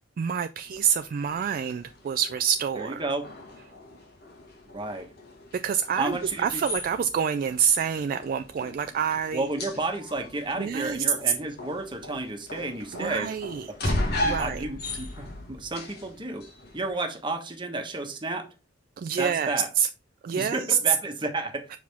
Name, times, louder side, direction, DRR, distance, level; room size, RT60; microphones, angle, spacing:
voice 1, 0.2-3.0 5.6-9.5 10.6-11.0 12.9-13.9 14.2-14.6 19.0-19.9 20.2-20.9, right 7 dB, 50° right, 0.3 m, -27 dB
sound 1, 0.7-16.9, left 1 dB, 55° left, 1.5 m, -37 dB
voice 2, 2.8-3.3 4.7-5.1 6.0-6.6 9.3-13.3 14.2-16.4 16.7-18.5 19.2-19.7 20.3-21.7, right 2 dB, 25° right, 1.2 m, -32 dB
5.7 x 4.8 x 3.5 m
head